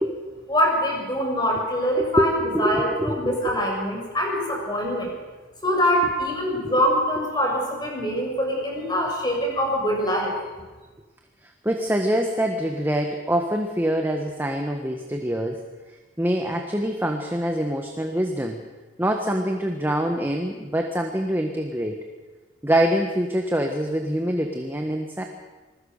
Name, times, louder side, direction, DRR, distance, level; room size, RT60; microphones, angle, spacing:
voice 1, 0.5-5.1 5.6-10.3, equal, 20° left, -1 dB, 7.2 m, -24 dB
voice 2, 2.0-3.5 11.4-15.6 16.2-18.6 19.0-22.0 22.6-25.2, equal, 10° right, 3 dB, 1.5 m, -25 dB
27.0 x 20.5 x 6.7 m, 1.3 s
head